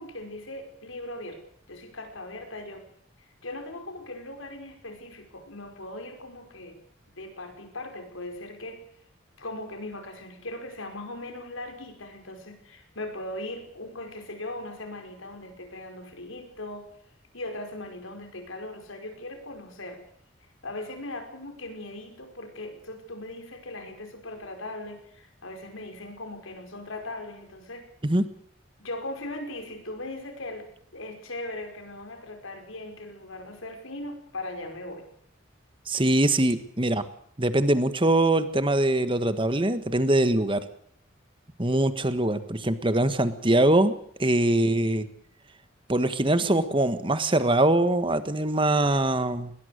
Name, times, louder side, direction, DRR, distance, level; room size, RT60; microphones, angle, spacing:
voice 1, 0.0-1.4 1.7-2.9 3.2-6.8 7.2-8.8 9.4-16.9 17.3-20.0 20.4-27.9 28.8-35.1, left 1 dB, 85° left, 5 dB, 5.3 m, -39 dB
voice 2, 35.9-37.0 37.4-40.6 41.6-43.9 44.2-45.1 45.9-49.5, right 1 dB, 25° right, 11 dB, 1.5 m, -23 dB
21.0 x 20.5 x 6.7 m, 0.66 s
head